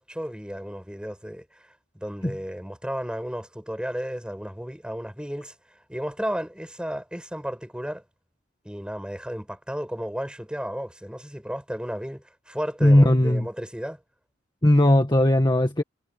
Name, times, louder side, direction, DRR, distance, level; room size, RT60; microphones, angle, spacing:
voice 1, 0.0-1.5 2.0-5.5 5.9-8.0 8.6-14.0, equal, 5° right, 7.1 m, -33 dB
voice 2, 12.8-13.5 14.6-15.8, left 1 dB, 20° left, 1.8 m, -18 dB
head